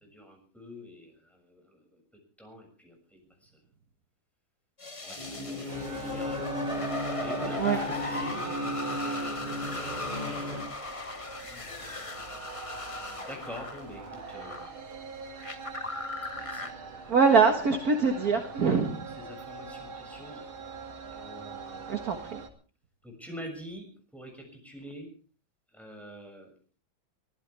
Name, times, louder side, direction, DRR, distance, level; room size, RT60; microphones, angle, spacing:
voice 1, 0.1-2.0 2.4-3.5 5.0-6.5 7.1-9.1 11.4-12.0 13.2-14.8 16.3-17.1 19.2-20.5 21.1-21.9 23.0-25.1 25.7-26.5, equal, ahead, 1 dB, 6.6 m, -46 dB
sound 1, 4.8-14.7 15.3-16.7, left 2 dB, 20° left, 1.0 m, -38 dB
sound 2, 5.2-10.6, left 1 dB, 20° right, 8.1 m, -35 dB
sound 3, 5.7-22.5, right 4 dB, 80° right, 3.0 m, -43 dB
voice 2, 17.1-19.1 21.9-22.4, right 5 dB, 50° right, 4 dB, 1.9 m, -24 dB
24.0 x 16.0 x 3.5 m, 0.39 s
omnidirectional pair, 2.2 m